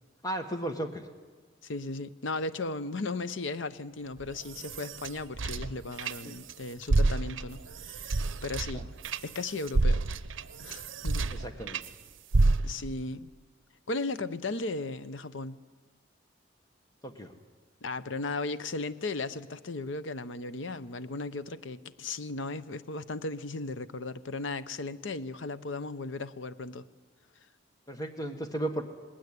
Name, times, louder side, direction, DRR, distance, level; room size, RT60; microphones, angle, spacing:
voice 1, 0.2-1.0 6.2-6.3 8.7-8.8 11.3-11.8 17.0-17.3 27.9-28.8, right 1 dB, 20° left, 6 dB, 1.6 m, -34 dB
voice 2, 1.6-8.9 9.2-10.0 10.6-11.2 12.6-13.3 13.9-15.6 17.8-26.9, left 3 dB, 75° left, 14 dB, 0.8 m, -36 dB
sound 1, 4.2-6.5 6.8-11.9 12.3-13.0, right 2 dB, 80° right, 0.7 m, -29 dB
19.5 x 16.0 x 9.8 m, 1.4 s
head